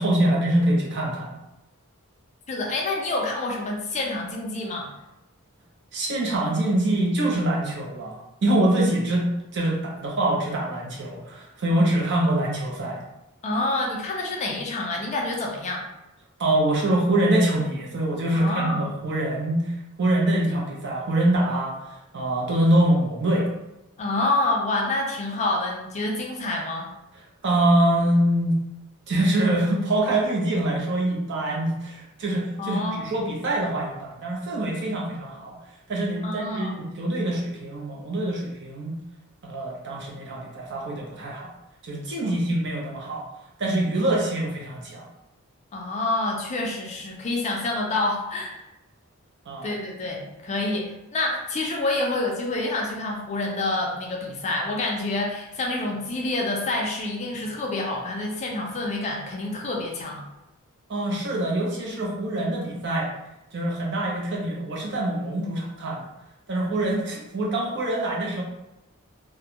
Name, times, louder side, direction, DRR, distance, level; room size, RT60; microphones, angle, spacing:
voice 1, 0.0-1.3 5.9-13.0 16.4-21.8 22.1-23.5 27.4-28.6 29.1-35.6 35.9-39.0 39.4-41.5 41.8-43.3 43.6-45.1 49.5-49.7 60.9-63.1 63.5-66.1 66.5-68.4, right 1 dB, 55° right, -2 dB, 0.5 m, -24 dB
voice 2, 2.5-4.9 13.4-15.8 18.3-18.8 24.0-26.9 32.6-33.1 36.2-36.8 45.7-48.6 49.6-60.2 66.9-67.0, left 2 dB, 30° left, 0 dB, 0.4 m, -27 dB
2.4 x 2.2 x 2.8 m, 0.95 s
head